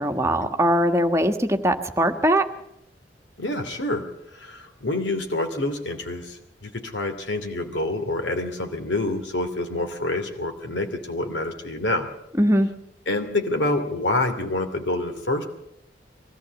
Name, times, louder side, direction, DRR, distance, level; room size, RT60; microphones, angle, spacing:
voice 1, 0.0-2.5 12.4-12.7, right 1 dB, 15° right, 5 dB, 1.4 m, -21 dB
voice 2, 3.4-4.1 4.3-12.1 13.1-15.5, left 2 dB, 85° left, 5 dB, 2.8 m, -27 dB
22.5 x 15.0 x 8.2 m, 0.80 s
head